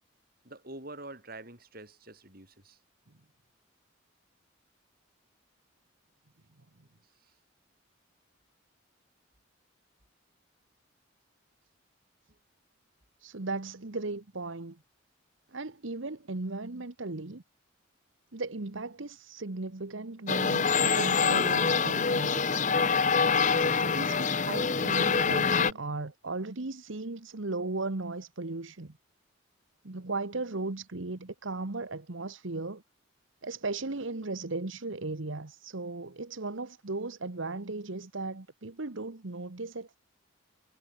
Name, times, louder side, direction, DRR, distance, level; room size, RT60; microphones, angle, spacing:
voice 1, 0.4-2.8 7.2-7.3 12.3-12.4, right 2 dB, 45° right, 6.9 m, -46 dB
voice 2, 13.2-14.8 15.5-17.4 18.3-22.7 23.4-29.0 29.8-32.8 33.4-40.0, right 3 dB, 65° right, 1.2 m, -36 dB
sound 1, 20.3-25.7, left 5 dB, 35° left, 0.8 m, -25 dB
head